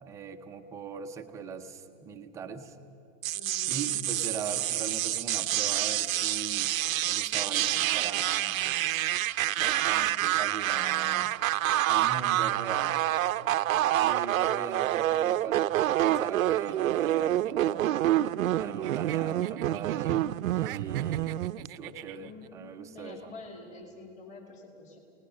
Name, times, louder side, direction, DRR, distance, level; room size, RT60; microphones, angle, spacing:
voice 1, 0.0-2.8 3.7-6.8 7.0-8.8 9.6-11.4 11.9-13.0 13.6-13.7 14.0-17.9 18.6-21.4 21.8-23.3, right 6 dB, 10° right, 4 dB, 0.5 m, -40 dB
sound 1, 3.2-21.7, right 13 dB, 80° right, 0.6 m, -27 dB
voice 2, 3.3-4.0 22.1-25.0, left 3 dB, 20° left, 2 dB, 2.4 m, -47 dB
sound 2, 16.7-18.5 18.8-20.2 20.5-22.5, right 15 dB, 45° right, 0.6 m, -46 dB
29.5 x 19.0 x 6.6 m, 2.7 s
hypercardioid pair, 150°, 40 cm